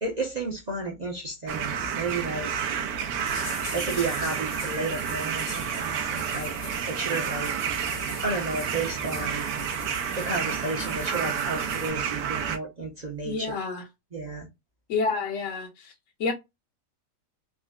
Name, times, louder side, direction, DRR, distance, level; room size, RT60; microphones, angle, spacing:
voice 1, 0.0-2.5 3.7-7.5 8.2-9.5 10.2-13.6 14.1-14.5, right 3 dB, 45° right, 0.5 m, -32 dB
sound 1, 1.5-12.6, right 7 dB, 80° right, 1.2 m, -30 dB
sound 2, 3.3-11.9, left 6 dB, 80° left, 1.5 m, -42 dB
voice 2, 13.2-13.8 14.9-15.9 16.2-16.3, left 4 dB, 65° left, 0.8 m, -28 dB
3.8 x 2.1 x 2.3 m
omnidirectional pair, 1.8 m